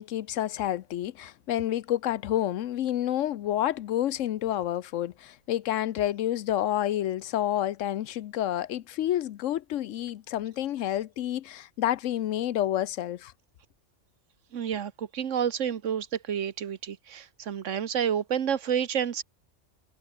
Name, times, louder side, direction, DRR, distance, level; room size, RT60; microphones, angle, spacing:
voice 1, 0.0-13.3, left 12 dB, 80° left, 1.0 m, -29 dB
voice 2, 14.5-19.2, right 8 dB, 80° right, 1.4 m, -29 dB
omnidirectional pair, 1.3 m